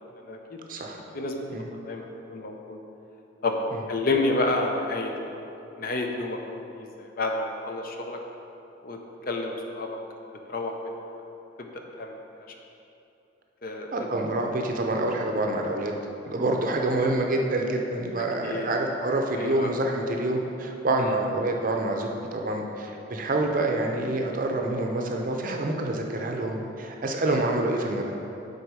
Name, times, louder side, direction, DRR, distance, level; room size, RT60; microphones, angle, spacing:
voice 1, 0.2-0.6 1.1-1.3 1.8-2.8 3.4-3.5 3.9-5.3 5.8-6.4 6.8-8.2 8.8-9.0 9.3-9.9 10.5-10.7 11.6-12.1 13.6-13.9 18.4-18.7 19.3-19.7 21.0-21.1 27.3-27.4, left 2 dB, 45° left, 2 dB, 0.6 m, -29 dB
voice 2, 13.9-15.9 16.3-28.1, right 2 dB, 45° right, 2 dB, 0.6 m, -27 dB
8.0 x 4.1 x 4.8 m, 2.9 s
head